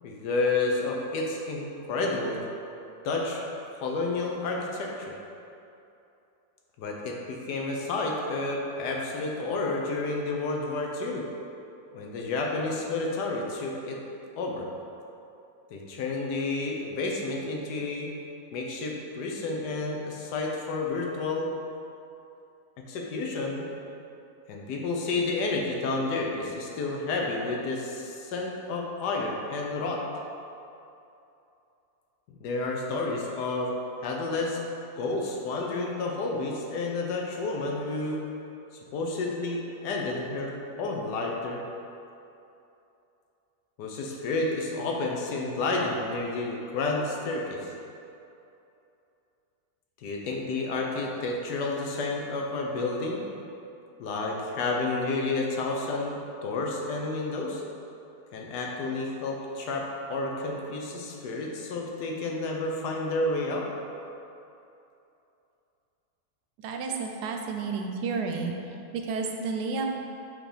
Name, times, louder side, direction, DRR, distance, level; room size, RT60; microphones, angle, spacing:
voice 1, 0.0-2.4 3.0-3.4 3.8-5.2 6.8-11.3 11.9-14.0 14.4-14.7 15.7-18.1 18.5-21.5 22.9-23.7 24.5-30.0 32.4-33.7 34.0-34.6 35.0-38.2 38.9-41.6 43.8-47.7 50.0-53.2 54.0-57.6 58.3-63.7, left 3 dB, 80° left, 0 dB, 1.3 m, -30 dB
voice 2, 66.6-68.5 68.9-70.0, right 4 dB, 80° right, 3 dB, 1.1 m, -31 dB
5.0 x 3.8 x 4.9 m, 2.8 s
omnidirectional pair, 1.8 m